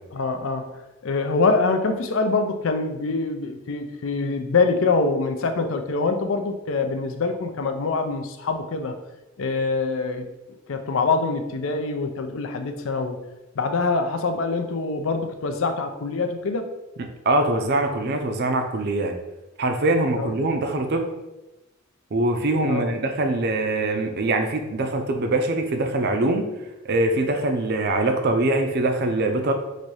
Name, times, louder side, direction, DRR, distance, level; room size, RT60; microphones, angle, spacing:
voice 1, 0.1-0.7 1.0-9.0 9.4-10.2 10.7-13.2 13.6-16.7 20.1-20.3 22.7-22.9, left 3 dB, 75° left, 6 dB, 0.5 m, -24 dB
voice 2, 17.3-19.1 19.6-21.1 22.1-26.5 26.8-29.5, right 2 dB, 50° right, 5 dB, 0.5 m, -23 dB
4.2 x 2.6 x 4.7 m, 1.0 s
head